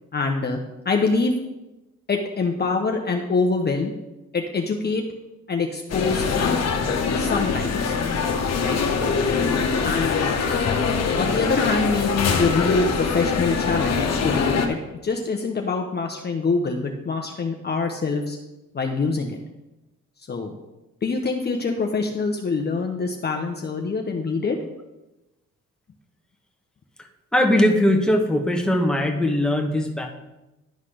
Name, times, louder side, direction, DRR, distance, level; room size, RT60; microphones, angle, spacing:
voice 1, 0.1-0.6 0.8-1.3 2.1-3.9 4.3-5.0 5.5-6.2 7.2-7.9 8.6-8.8 9.8-10.2 11.2-18.4 18.7-19.4 20.3-20.6 21.0-24.6, left 4 dB, 35° left, 2 dB, 0.8 m, -24 dB
sound 1, 5.9-14.7, left 5 dB, 60° left, 1.2 m, -23 dB
voice 2, 27.3-30.1, left 1 dB, 5° left, 2 dB, 1.2 m, -20 dB
11.5 x 4.1 x 4.9 m, 1.0 s
cardioid pair, 90°, 30 cm